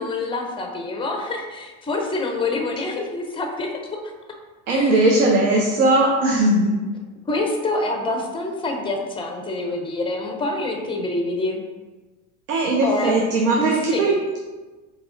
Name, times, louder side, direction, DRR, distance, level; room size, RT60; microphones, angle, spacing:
voice 1, 0.0-4.1 4.7-5.1 7.3-11.6 12.8-13.1 13.6-14.1, left 2 dB, 10° left, 2 dB, 0.5 m, -26 dB
voice 2, 4.7-6.8 12.5-14.1, right 2 dB, 75° right, 0 dB, 0.7 m, -18 dB
4.7 x 3.0 x 2.5 m, 1.3 s
hypercardioid pair, 95°, 45 cm